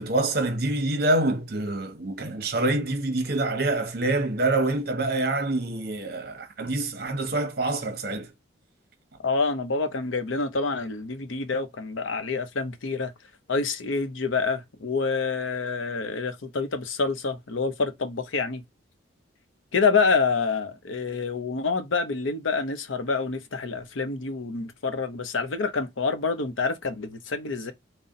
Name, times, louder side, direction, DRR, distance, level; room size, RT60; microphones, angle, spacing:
voice 1, 0.0-8.3, right 2 dB, 50° right, 0.9 m, -26 dB
voice 2, 9.2-13.1 13.5-18.6 19.7-27.7, left 4 dB, 80° left, 0.7 m, -27 dB
4.1 x 2.1 x 3.7 m
head